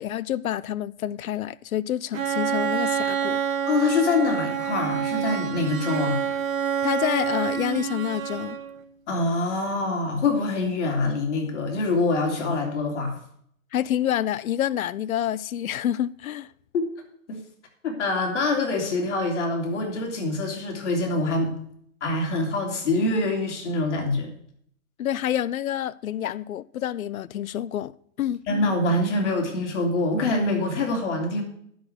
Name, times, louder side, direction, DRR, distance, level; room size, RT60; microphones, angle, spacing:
voice 1, 0.0-3.4 6.8-8.6 13.7-16.5 25.0-27.9 28.2-28.4, left 11 dB, 85° left, 0.6 m, -28 dB
Bowed string instrument, 2.1-8.8, right 8 dB, 80° right, 1.4 m, -27 dB
voice 2, 3.7-6.2 9.1-13.1 16.7-16.9 17.3-17.4 17.8-21.5 22.0-24.3 28.5-31.4, left 2 dB, 60° left, 3.2 m, -25 dB
10.5 x 6.3 x 8.0 m
hypercardioid pair, 150°, 41 cm